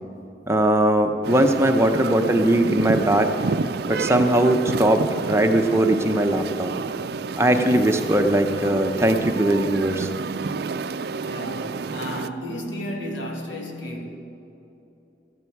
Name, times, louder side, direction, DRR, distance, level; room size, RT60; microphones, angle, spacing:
voice 1, 0.5-3.3 3.9-6.7 7.4-10.1, right 1 dB, 15° right, 0.7 m, -20 dB
sound 1, 1.2-12.3, right 4 dB, 55° right, 0.4 m, -29 dB
voice 2, 11.2-14.1, equal, 90° left, 2.1 m, -33 dB
16.5 x 14.0 x 4.7 m
head